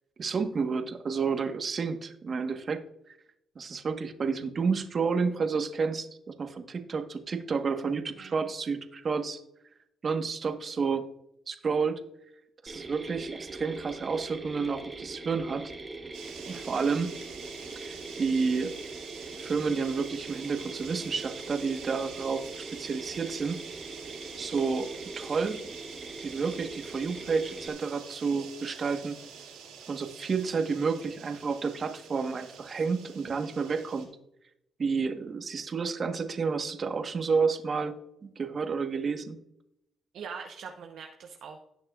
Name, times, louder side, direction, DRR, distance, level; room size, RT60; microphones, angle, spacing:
voice 1, 0.2-3.2 3.5-9.4 10.0-11.1 11.5-12.0 12.6-15.7 16.4-17.1 17.7-18.8 19.4-23.6 24.4-25.6 26.2-29.2 29.9-34.1 34.8-39.4, right 5 dB, 50° right, 7 dB, 1.3 m, -30 dB
voice 2, 8.2-8.5 16.4-16.6 40.1-41.6, right 6 dB, 70° right, 2 dB, 0.9 m, -43 dB
Mechanisms, 12.7-27.7, right 3 dB, 30° right, 1.5 m, -42 dB
sound 1, 16.1-34.0, right 7 dB, 90° right, 3.8 m, -47 dB
17.5 x 6.4 x 2.5 m, 0.78 s
supercardioid pair, 60°, 0 cm